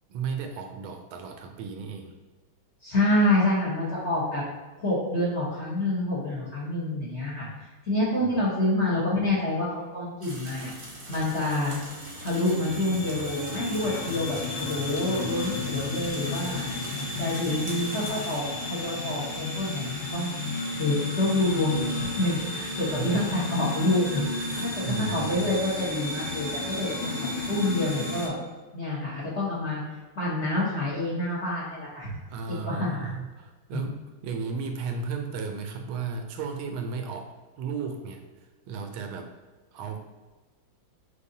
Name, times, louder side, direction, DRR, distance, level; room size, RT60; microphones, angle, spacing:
voice 1, 0.1-2.2 8.2-8.4 22.9-23.2 24.1-25.5 32.3-37.3 37.6-38.2 38.7-39.3 39.7-40.0, right 5 dB, 80° right, 5 dB, 1.4 m, -34 dB
voice 2, 2.8-4.4 4.8-7.5 7.9-10.7 11.1-11.8 12.2-16.7 17.2-20.3 20.8-24.2 24.9-28.3 28.7-29.8 30.2-32.1 32.6-33.1, left 1 dB, 45° left, -7 dB, 1.0 m, -27 dB
sound 1, 10.2-18.4, right 1 dB, 45° right, 0.9 m, -43 dB
sound 2, 10.4-28.3, left 2 dB, 60° left, 1.5 m, -33 dB
6.3 x 2.7 x 2.7 m, 1.3 s
omnidirectional pair, 2.3 m